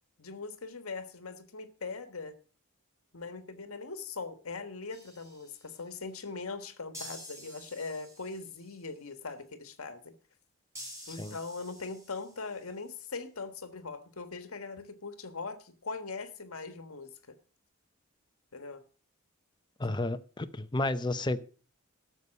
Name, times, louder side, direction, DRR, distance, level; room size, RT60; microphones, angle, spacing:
voice 1, 0.2-2.3 3.1-10.2 11.1-17.1 18.5-18.8, left 4 dB, 75° left, 10 dB, 1.5 m, -41 dB
sound 1, 4.9-5.8 6.9-8.8 10.8-12.7, equal, 15° right, 6.5 m, -49 dB
voice 2, 19.8-21.4, left 2 dB, 20° left, 11 dB, 0.6 m, -31 dB
12.5 x 6.9 x 6.2 m, 0.39 s
head